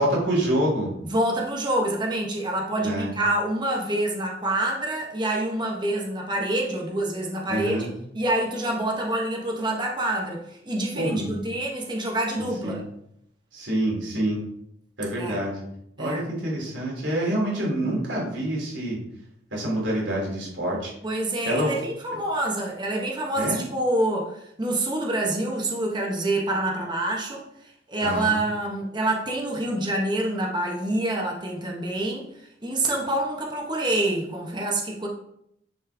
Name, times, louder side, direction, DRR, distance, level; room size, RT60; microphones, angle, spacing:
voice 1, 0.0-0.9 2.8-3.1 7.5-7.9 10.9-11.4 12.6-12.8 13.5-14.4 15.0-15.6 16.0-19.0 19.5-20.9 21.4-21.7 23.4-23.6 28.0-28.4, right 1 dB, 85° right, -3 dB, 3.0 m, -26 dB
voice 2, 1.1-7.9 8.1-12.8 15.2-15.4 16.0-16.2 21.0-27.5 27.9-32.3 32.6-35.1, right 1 dB, 25° right, 0 dB, 1.1 m, -26 dB
9.8 x 4.4 x 3.5 m, 0.76 s
head